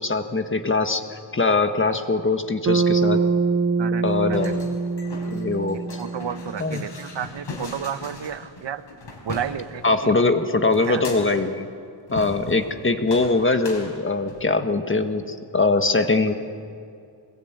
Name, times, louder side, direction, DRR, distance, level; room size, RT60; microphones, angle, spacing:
voice 1, 0.0-3.2 4.0-4.6 5.3-5.8 6.6-6.8 9.8-11.7 12.1-16.3, left 3 dB, 25° left, 7 dB, 1.5 m, -22 dB
Bass guitar, 2.7-7.0, right 4 dB, 35° right, 0.8 m, -24 dB
voice 2, 3.8-4.4 6.0-8.8 9.2-10.2 10.9-11.0, right 8 dB, 65° right, 11 dB, 1.2 m, -32 dB
sound 1, 4.1-10.0 10.7-11.6 12.1-12.8 13.1-14.5, left 3 dB, 65° left, 4.6 m, -38 dB
23.0 x 20.0 x 8.9 m, 2.4 s
wide cardioid pair, 100°, 46 cm